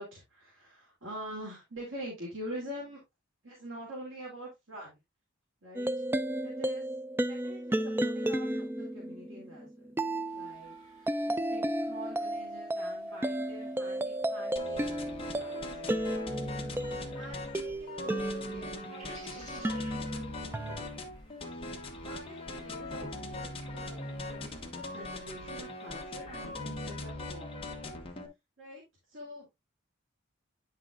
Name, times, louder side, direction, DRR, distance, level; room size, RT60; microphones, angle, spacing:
voice 1, 0.0-3.0 3.4-5.0 5.6-5.9 6.4-6.8 7.2-9.9 10.3-10.8 11.2-15.8 17.1-21.0 22.0-27.8 28.6-29.5, equal, 75° right, -4 dB, 2.9 m, -46 dB
sound 1, 5.8-19.1 19.6-20.8, right 1 dB, 10° right, 0.3 m, -33 dB
sound 2, 10.3-26.8, right 1 dB, 40° right, 4.1 m, -60 dB
sound 3, 14.6-28.3, left 2 dB, 30° left, 1.4 m, -40 dB
9.2 x 5.9 x 2.5 m, 0.21 s
head